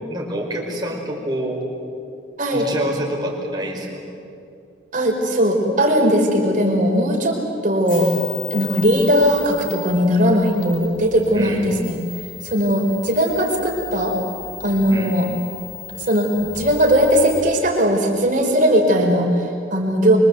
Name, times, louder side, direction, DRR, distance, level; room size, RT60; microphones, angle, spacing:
voice 1, 0.1-1.6 2.5-4.0 11.3-11.7 14.9-15.1, right 1 dB, 20° right, -2 dB, 5.0 m, -26 dB
voice 2, 4.9-8.1 8.5-12.0 12.4-14.2 14.6-15.3 16.0-16.3 16.5-20.2, equal, 45° right, 0 dB, 4.6 m, -18 dB
sound 1, 7.8-17.4, left 9 dB, 45° left, 7.5 m, -36 dB
25.5 x 24.5 x 8.2 m, 2.5 s
head